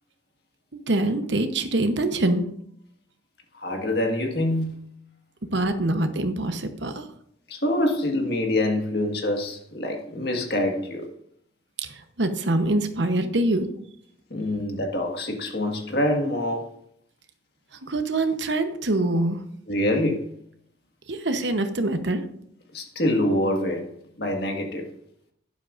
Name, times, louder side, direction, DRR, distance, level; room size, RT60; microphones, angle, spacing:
voice 1, 0.9-2.5 5.5-7.1 11.8-13.7 17.8-19.4 21.1-22.2, right 2 dB, 75° right, 1.0 m, -24 dB
voice 2, 3.5-4.8 7.5-11.1 14.3-16.6 19.7-20.2 22.7-23.8 24.2-24.9, left 1 dB, 60° left, 1.7 m, -25 dB
12.0 x 10.5 x 2.6 m
head